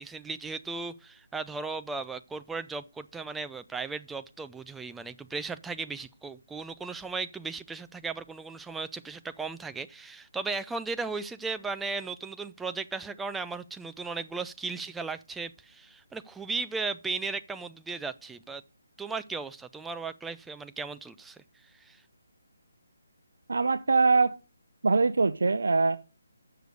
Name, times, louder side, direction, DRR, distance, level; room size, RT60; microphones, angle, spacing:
voice 1, 0.0-18.6 19.0-21.4 21.8-22.0, right 4 dB, 5° right, 0.4 m, -36 dB
voice 2, 23.5-24.4 24.8-26.0, right 4 dB, 75° right, 0.6 m, -23 dB
6.7 x 6.6 x 6.3 m
figure-of-eight pair, 160°, 0 cm